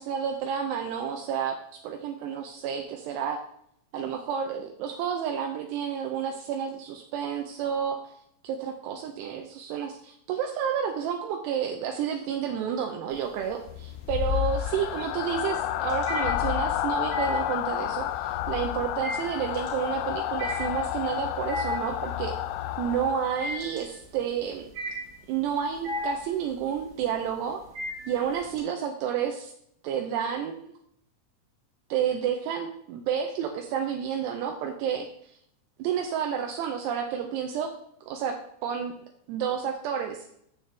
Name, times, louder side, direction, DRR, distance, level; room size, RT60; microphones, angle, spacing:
voice 1, 0.0-3.4 3.9-8.0 8.4-22.4 22.8-24.7 25.3-27.6 28.1-29.5 29.8-30.7 31.9-35.3 35.8-37.7 38.1-38.9 39.3-40.3, right 8 dB, 85° right, 4 dB, 2.4 m, -30 dB
sound 1, 13.1-13.7 14.1-28.6, left 1 dB, 60° right, 1.2 m, -36 dB
sound 2, 13.6-23.6, left 13 dB, 85° left, 3.1 m, -30 dB
9.1 x 7.3 x 3.3 m, 0.71 s
omnidirectional pair, 5.6 m